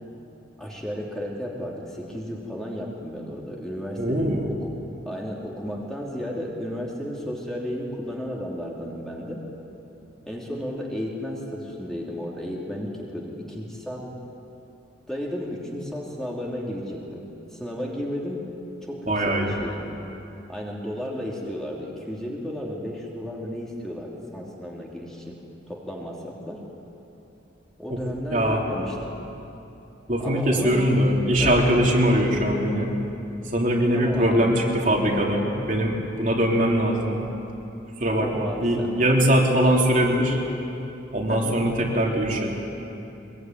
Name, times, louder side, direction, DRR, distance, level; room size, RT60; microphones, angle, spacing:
voice 1, 0.6-4.7 5.0-9.4 10.3-14.1 15.1-18.4 18.9-19.8 20.5-25.4 25.7-26.6 27.8-29.2 30.2-30.9 31.4-31.6 33.9-34.4 38.2-39.0 41.3-41.6, equal, 5° left, -3 dB, 3.0 m, -33 dB
voice 2, 4.0-4.5 19.1-19.5 28.3-28.6 30.1-32.9 33.5-37.2 38.0-40.4 41.1-42.5, equal, 40° right, -1 dB, 3.3 m, -21 dB
23.5 x 22.0 x 9.4 m, 3.0 s
head